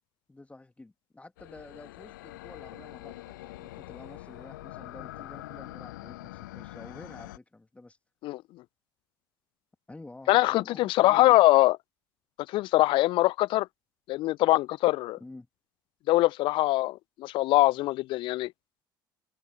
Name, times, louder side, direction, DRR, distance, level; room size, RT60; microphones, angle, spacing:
voice 1, 0.3-8.0 9.9-11.4 15.2-15.5, left 2 dB, 10° left, 2.8 m, -49 dB
sound 1, 1.4-7.4, left 18 dB, 70° left, 1.0 m, -44 dB
voice 2, 10.3-11.8 12.5-13.7 14.1-15.2 16.1-18.5, left 18 dB, 50° left, 0.5 m, -23 dB
open air
figure-of-eight pair, 60°, 11 cm